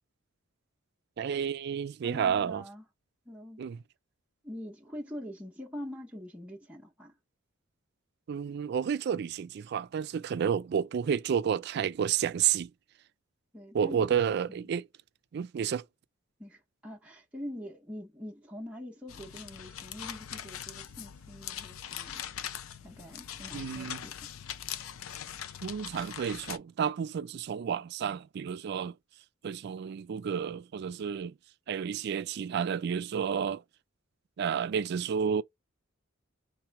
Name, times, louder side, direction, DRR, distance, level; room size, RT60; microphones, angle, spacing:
voice 1, 1.2-2.6 3.6-3.8 8.3-12.7 13.7-14.8 15.3-15.8 23.5-24.0 25.6-28.9 29.4-31.3 31.7-33.6 34.4-35.4, right 7 dB, 55° right, 0.3 m, -31 dB
voice 2, 2.0-2.8 3.3-3.6 4.4-7.1 13.5-14.2 14.5-14.7 16.4-22.3 22.8-24.2, left 1 dB, 5° right, 0.7 m, -44 dB
sound 1, 19.1-26.6, left 9 dB, 90° left, 0.5 m, -41 dB
3.2 x 3.0 x 4.5 m
head